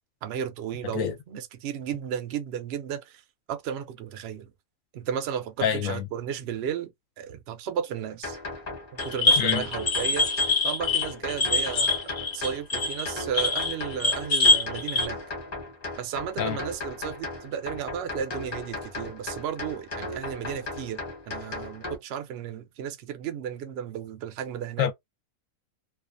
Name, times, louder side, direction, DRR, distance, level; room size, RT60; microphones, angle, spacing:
voice 1, 0.2-3.2 3.5-4.5 4.9-6.9 7.2-8.4 8.9-10.3 10.6-15.2 15.9-24.9, right 8 dB, 65° right, 0.6 m, -34 dB
voice 2, 5.6-6.1 9.4-9.7 16.4-16.6 24.8-24.9, left 9 dB, 70° left, 0.9 m, -26 dB
sound 1, 8.2-22.0, left 2 dB, 30° left, 1.0 m, -37 dB
sound 2, 9.0-15.1, left 3 dB, 55° left, 0.4 m, -24 dB
2.4 x 2.3 x 2.4 m
omnidirectional pair, 1.5 m